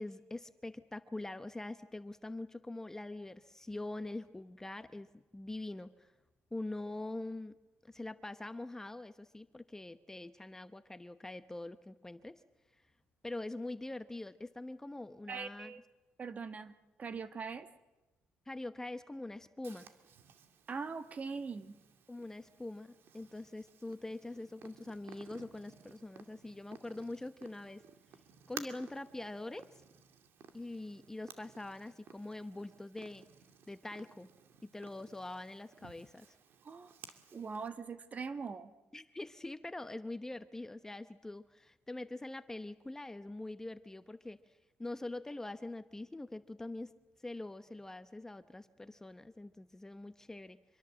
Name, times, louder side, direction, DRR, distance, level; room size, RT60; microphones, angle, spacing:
voice 1, 0.0-6.1 6.5-7.6 7.8-12.4 13.2-15.7 18.5-19.9 22.1-27.8 28.5-29.8 30.5-33.3 33.7-34.3 34.6-36.4 38.9-44.5 44.8-46.9 47.2-50.8, left 2 dB, 10° left, 11 dB, 0.9 m, -44 dB
voice 2, 15.3-15.8 16.2-16.7 17.0-17.7 20.7-21.7 36.6-36.9 37.3-38.7, right 5 dB, 35° right, 10 dB, 1.4 m, -41 dB
Purr, 19.6-37.7, right 7 dB, 65° right, 2.1 m, -56 dB
25.5 x 23.0 x 7.6 m, 1.0 s
cardioid pair, 110°, 4 cm